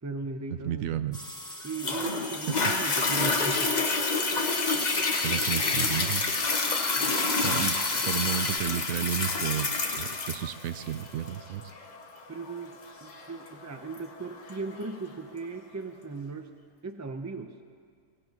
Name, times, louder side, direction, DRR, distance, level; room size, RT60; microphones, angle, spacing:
voice 1, 0.0-1.0 1.6-3.8 7.0-7.3 12.3-16.5 16.8-17.5, right 4 dB, 20° right, 6 dB, 0.5 m, -37 dB
voice 2, 0.6-1.2 5.2-6.2 7.4-7.8 8.0-11.6, right 10 dB, 80° right, 12 dB, 1.0 m, -32 dB
sound 1, 1.1-8.6, left 3 dB, 5° left, 1.3 m, -37 dB
Toilet flush, 1.8-14.8 15.4-15.5, left 3 dB, 35° left, 0.9 m, -28 dB
23.0 x 16.5 x 3.0 m, 2.1 s
omnidirectional pair, 1.4 m